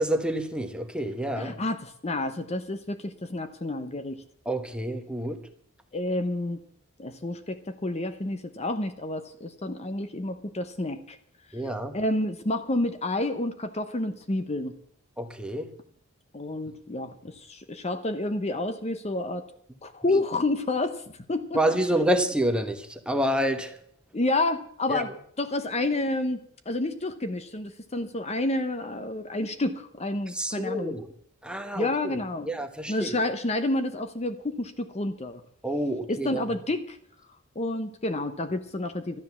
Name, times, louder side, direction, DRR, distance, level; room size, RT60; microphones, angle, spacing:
voice 1, 0.0-1.6 4.4-5.4 11.5-12.0 15.2-15.7 20.1-20.2 21.5-23.8 24.9-25.1 30.3-31.1 31.4-32.2 32.4-33.1 35.6-36.4, right 1 dB, 5° right, 1.1 m, -28 dB
voice 2, 1.4-4.2 5.9-6.6 7.0-11.2 11.9-14.7 16.3-19.5 19.8-21.0 21.3-21.6 24.1-25.1 25.4-31.0 31.7-32.5 32.9-35.4 36.1-37.0 37.6-39.2, left 2 dB, 30° left, 0.8 m, -29 dB
13.0 x 10.0 x 7.1 m
head